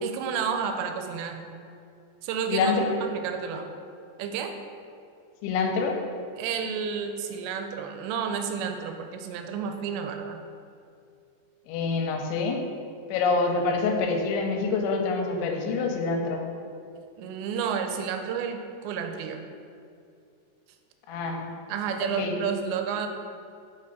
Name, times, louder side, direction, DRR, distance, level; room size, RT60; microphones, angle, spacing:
voice 1, 0.0-1.5 2.2-2.7 3.0-3.7 4.2-4.6 6.4-10.4 17.2-19.4 21.7-23.1, right 7 dB, 85° right, 6 dB, 2.7 m, -31 dB
voice 2, 2.5-3.0 5.4-6.0 11.7-12.6 13.1-16.4 21.1-21.5 22.0-22.4, left 4 dB, 90° left, 3 dB, 3.0 m, -26 dB
6.5 x 5.3 x 4.0 m, 2.4 s
omnidirectional pair, 5.2 m